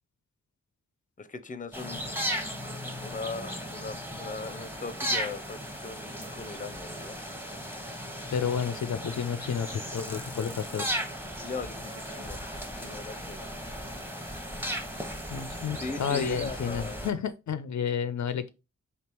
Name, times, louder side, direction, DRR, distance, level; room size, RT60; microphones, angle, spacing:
voice 1, 1.2-2.0 3.0-7.2 11.4-12.4 12.7-13.5 15.8-17.0, left 3 dB, 25° left, 0.6 m, -39 dB
sound 1, 1.7-17.1, equal, 5° right, 0.9 m, -36 dB
voice 2, 8.3-11.0 15.3-18.5, left 7 dB, 70° left, 0.5 m, -31 dB
3.4 x 2.8 x 4.4 m
cardioid pair, 45°, 30 cm